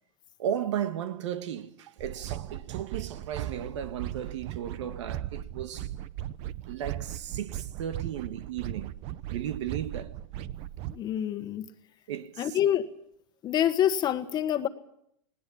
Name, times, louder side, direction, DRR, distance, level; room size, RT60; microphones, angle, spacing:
voice 1, 0.4-5.9 6.7-9.0 9.3-10.2 12.1-12.6, right 9 dB, 75° right, 1.6 m, -35 dB
sound 1, 2.0-11.0, right 13 dB, 40° right, 0.8 m, -38 dB
voice 2, 10.9-11.7 12.4-12.9 13.4-14.7, left 10 dB, 25° left, 1.4 m, -26 dB
19.5 x 19.0 x 8.7 m
supercardioid pair, 145°, 15 cm